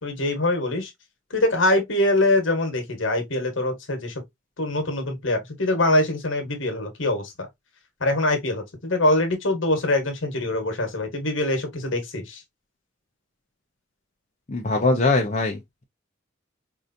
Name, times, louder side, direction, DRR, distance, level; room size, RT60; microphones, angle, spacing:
voice 1, 0.0-0.9 1.3-4.1 4.6-7.5 8.0-12.4, left 1 dB, 70° left, 1.3 m, -23 dB
voice 2, 14.5-15.8, left 3 dB, 35° left, 0.6 m, -22 dB
4.7 x 2.6 x 2.6 m
head